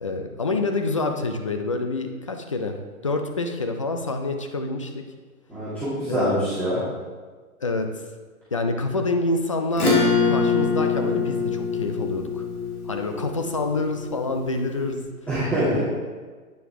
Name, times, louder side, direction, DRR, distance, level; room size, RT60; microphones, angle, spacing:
voice 1, 0.0-2.8 3.0-5.0 6.1-6.5 7.6-7.9 8.5-12.4 12.9-15.0 15.6-15.8, left 3 dB, 25° left, 5 dB, 0.3 m, -27 dB
voice 2, 5.5-6.8 15.3-15.8, right 1 dB, 5° left, -15 dB, 2.5 m, -24 dB
Acoustic guitar / Strum, 9.7-14.7, left 4 dB, 85° left, 2.6 m, -24 dB
9.2 x 6.5 x 3.6 m, 1.4 s
hypercardioid pair, 135°, 43 cm